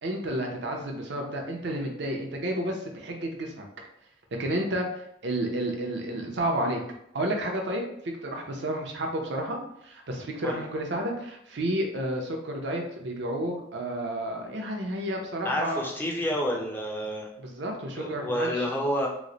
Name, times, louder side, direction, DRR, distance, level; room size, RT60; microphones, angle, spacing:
voice 1, 0.0-3.7 4.4-6.8 7.1-9.6 9.8-15.8 17.4-18.7, right 1 dB, 65° right, 2 dB, 0.7 m, -31 dB
voice 2, 15.4-17.3 18.0-19.1, equal, 10° left, -2 dB, 0.6 m, -29 dB
3.1 x 2.1 x 3.8 m, 0.73 s
head